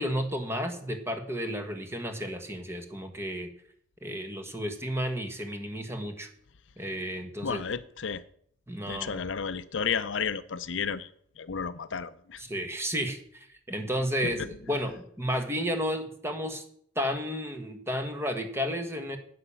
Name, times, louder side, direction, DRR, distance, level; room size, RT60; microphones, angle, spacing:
voice 1, 0.0-3.5 4.0-6.3 6.8-7.6 8.7-9.2 12.4-16.6 16.9-19.2, equal, 15° right, 6 dB, 1.4 m, -32 dB
voice 2, 7.4-8.2 8.9-11.1 11.4-12.4 14.4-14.5, left 6 dB, 70° left, 14 dB, 0.6 m, -32 dB
9.7 x 8.6 x 6.9 m, 0.65 s
head